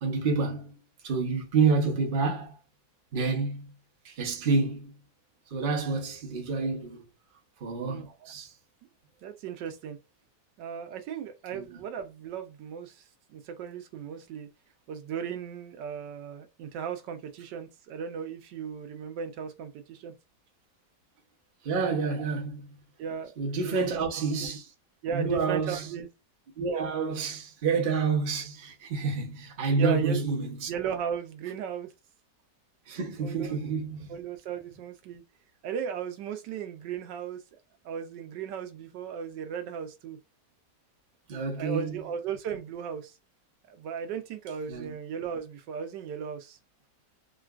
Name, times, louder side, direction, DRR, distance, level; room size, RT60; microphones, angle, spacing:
voice 1, 0.0-2.6 3.1-3.7 4.0-4.9 5.5-7.0 7.6-8.5 11.5-11.7 21.6-22.7 23.4-24.7 25.1-25.9 26.6-30.7 32.9-34.1 41.3-42.0 44.7-44.9, right 4 dB, 40° right, 0.8 m, -28 dB
voice 2, 7.9-8.3 9.2-10.0 10.6-13.0 13.3-14.5 14.9-20.1 23.0-23.3 23.6-24.0 24.4-24.5 25.0-26.1 29.8-30.2 30.7-31.9 33.2-33.6 34.1-35.2 35.6-37.4 37.8-40.2 41.6-43.1 43.7-46.6, right 7 dB, 80° right, 1.2 m, -36 dB
3.8 x 2.3 x 2.3 m
omnidirectional pair, 1.9 m